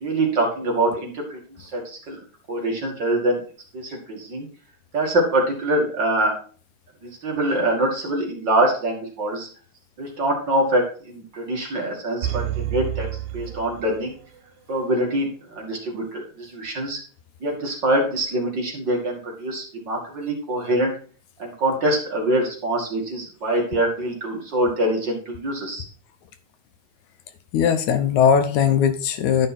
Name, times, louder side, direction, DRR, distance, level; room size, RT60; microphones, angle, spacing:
voice 1, 0.0-2.2 2.5-3.4 3.7-4.5 4.9-6.3 7.0-9.5 10.0-13.1 13.3-14.1 14.7-17.0 17.4-20.9 21.4-25.8, right 1 dB, 40° right, -1 dB, 2.6 m, -24 dB
sound 1, 12.2-14.4 14.7-14.8, right 12 dB, 85° right, 2.1 m, -29 dB
voice 2, 27.5-29.5, left 7 dB, 80° left, 8 dB, 2.3 m, -19 dB
12.0 x 5.4 x 4.2 m, 0.42 s
omnidirectional pair, 3.3 m